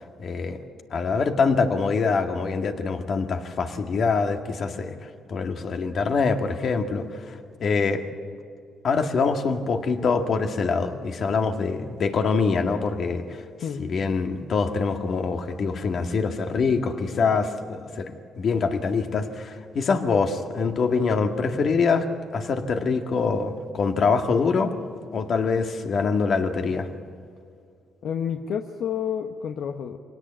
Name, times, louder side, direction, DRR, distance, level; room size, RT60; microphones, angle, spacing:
voice 1, 0.2-0.6 0.9-4.9 5.3-8.0 8.8-13.4 13.8-18.1 18.4-22.1 22.3-24.7 25.1-26.9, left 4 dB, 55° left, 6 dB, 1.9 m, -24 dB
voice 2, 13.6-14.0 28.0-30.0, left 8 dB, 70° left, 5 dB, 1.1 m, -29 dB
24.0 x 18.0 x 8.9 m, 2.3 s
cardioid pair, 90°, 0 cm